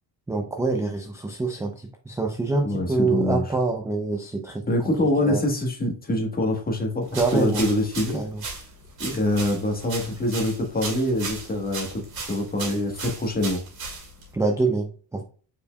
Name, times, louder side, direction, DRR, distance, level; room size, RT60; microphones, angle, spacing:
voice 1, 0.3-4.7 5.2-5.4 7.1-7.7 8.1-8.4 14.3-15.2, right 3 dB, 5° right, 3 dB, 0.4 m, -26 dB
voice 2, 2.6-3.4 4.7-8.2 9.0-12.0 12.3-13.6, left 1 dB, 20° left, 2 dB, 1.3 m, -25 dB
sound 1, 7.1-14.3, right 4 dB, 55° right, 2.1 m, -36 dB
5.4 x 4.4 x 2.2 m, 0.40 s
cardioid pair, 140°, 43 cm